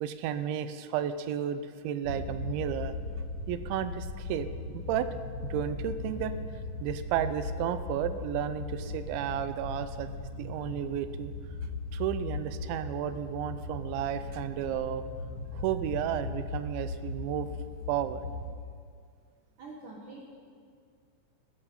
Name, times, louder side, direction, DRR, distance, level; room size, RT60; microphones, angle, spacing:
voice 1, 0.0-2.9 3.5-4.5 4.7-5.1 5.5-6.3 6.8-10.1 10.4-11.3 11.9-15.0 15.5-17.5 17.9-18.2, right 10 dB, 85° right, 11 dB, 3.0 m, -32 dB
sound 1, 2.0-18.5, left 2 dB, 45° left, 1.7 m, -38 dB
voice 2, 19.6-20.2, right 3 dB, 60° right, -3 dB, 2.4 m, -45 dB
15.5 x 14.0 x 5.4 m, 2.1 s
omnidirectional pair, 5.3 m